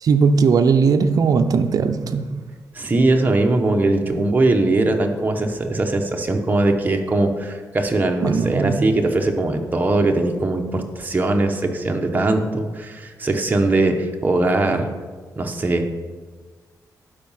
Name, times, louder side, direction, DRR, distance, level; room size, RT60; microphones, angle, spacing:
voice 1, 0.0-2.4 8.2-8.8, right 5 dB, 60° right, 6 dB, 0.5 m, -18 dB
voice 2, 2.7-14.9 15.4-15.8, right 2 dB, 25° right, 3 dB, 1.0 m, -20 dB
12.0 x 5.0 x 5.6 m, 1.5 s
wide cardioid pair, 115°, 7 cm